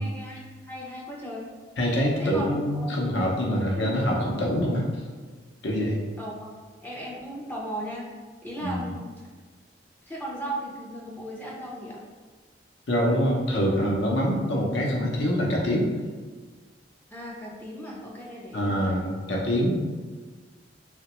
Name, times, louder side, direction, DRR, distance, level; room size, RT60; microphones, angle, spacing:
voice 1, 0.0-1.4 2.2-2.5 2.9-3.0 6.2-6.5 6.8-8.1 8.4-9.3 10.0-12.0 17.1-18.9, right 1 dB, 10° left, -5 dB, 0.4 m, -36 dB
voice 2, 1.8-4.9 5.6-6.0 8.6-8.9 12.9-15.9 18.5-19.7, equal, 80° left, -1 dB, 0.6 m, -25 dB
3.0 x 2.1 x 2.9 m, 1.4 s
head